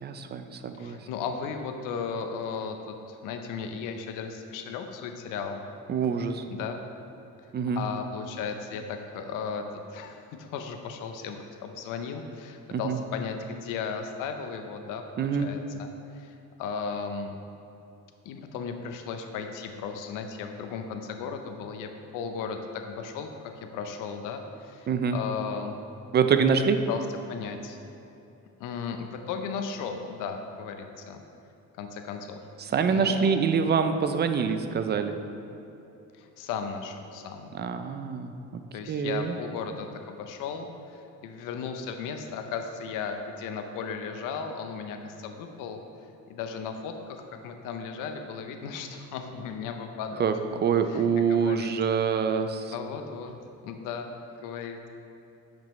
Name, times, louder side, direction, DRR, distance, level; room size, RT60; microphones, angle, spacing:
voice 1, 0.0-1.0 5.9-6.4 7.5-7.8 12.7-13.0 15.2-15.5 24.9-25.2 26.1-26.8 32.6-35.1 37.5-38.3 38.9-39.4 50.2-50.3 50.6-52.7, right 6 dB, 35° right, 8 dB, 0.4 m, -25 dB
voice 2, 0.7-5.6 6.5-6.8 7.7-9.6 9.9-17.4 18.2-23.3 23.6-25.7 26.9-27.8 28.6-31.2 31.8-32.4 32.9-33.5 36.1-37.5 38.7-45.8 46.3-50.4 50.9-52.0 52.7-53.3 53.6-54.1 54.4-54.9, left 6 dB, 90° left, 6 dB, 0.7 m, -36 dB
8.8 x 5.2 x 3.1 m, 2.8 s
cardioid pair, 110°, 31 cm